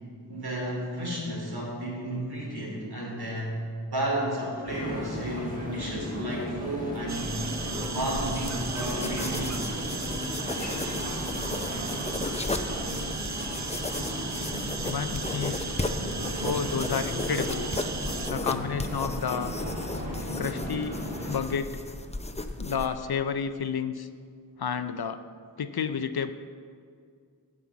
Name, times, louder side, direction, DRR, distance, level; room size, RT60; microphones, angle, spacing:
voice 1, 0.3-3.6 3.9-7.4 7.9-9.5, right 1 dB, 60° right, -3 dB, 3.2 m, -32 dB
sound 1, 4.7-21.4, equal, 20° right, 2.6 m, -35 dB
sound 2, 7.1-18.3, right 4 dB, 40° right, 0.7 m, -37 dB
sound 3, 7.2-22.9, left 2 dB, 15° left, 0.6 m, -36 dB
voice 2, 14.8-15.6 16.4-17.7 18.3-19.6 20.4-21.7 22.6-24.1 24.6-25.2 25.6-26.3, left 7 dB, 60° left, 11 dB, 0.6 m, -31 dB
9.8 x 5.5 x 8.2 m, 2.2 s
wide cardioid pair, 65°, 42 cm